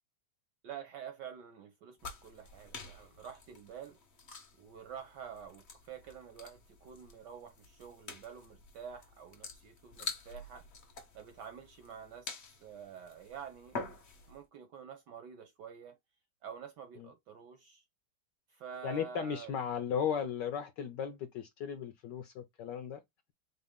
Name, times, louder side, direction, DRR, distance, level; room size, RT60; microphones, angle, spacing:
voice 1, 0.6-4.0 4.6-10.7 11.1-13.8 14.3-16.0 16.4-17.8 18.5-19.6, right 7 dB, 75° right, 1.0 m, -48 dB
sound 1, 2.0-14.4, left 3 dB, 50° left, 0.8 m, -48 dB
voice 2, 18.8-23.0, left 7 dB, 75° left, 1.0 m, -36 dB
4.0 x 2.7 x 3.5 m
omnidirectional pair, 2.4 m